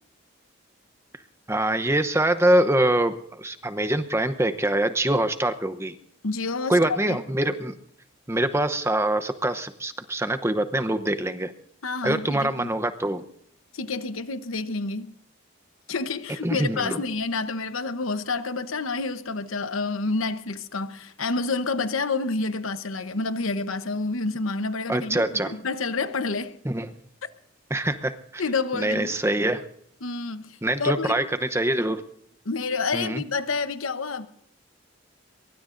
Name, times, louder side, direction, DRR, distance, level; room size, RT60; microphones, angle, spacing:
voice 1, 1.5-5.9 6.7-7.7 8.3-11.5 12.0-13.2 16.4-17.0 24.9-25.5 26.6-26.9 27.7-28.4 28.7-29.6 30.6-32.0 32.9-33.2, right 1 dB, 15° right, 0.8 m, -24 dB
voice 2, 6.2-7.2 11.8-12.7 13.7-15.1 15.9-26.6 27.2-27.3 28.4-29.2 30.0-31.2 32.4-34.3, left 3 dB, 90° left, 1.0 m, -29 dB
23.5 x 23.0 x 2.6 m
head